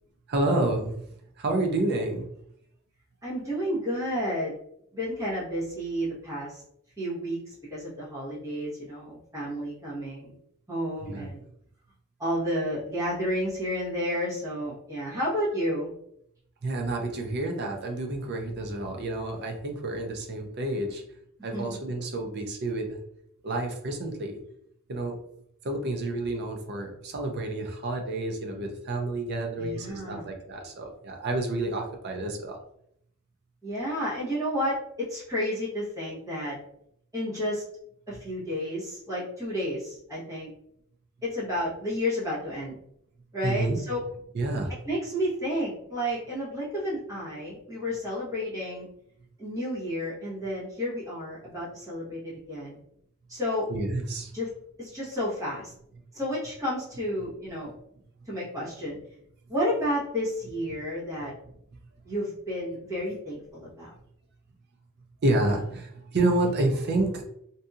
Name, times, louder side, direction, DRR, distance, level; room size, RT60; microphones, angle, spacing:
voice 1, 0.3-2.3 11.0-11.4 16.6-21.0 21.4-23.0 23.4-24.4 24.9-25.2 25.6-32.6 43.4-43.8 44.3-44.8 53.7-54.3 65.2-67.2, right 2 dB, 50° right, 3 dB, 0.5 m, -29 dB
voice 2, 3.2-4.5 4.9-6.6 7.0-10.4 10.7-11.4 12.2-15.9 21.5-21.8 29.6-30.3 33.6-36.6 37.1-37.6 38.1-40.5 41.2-42.7 43.3-44.0 44.9-48.9 49.4-52.8 53.3-53.7 54.3-54.5 54.8-55.7 56.1-57.7 58.3-59.0 59.5-61.3 62.1-63.9, equal, 15° right, -8 dB, 1.0 m, -31 dB
2.7 x 2.6 x 2.3 m, 0.73 s
head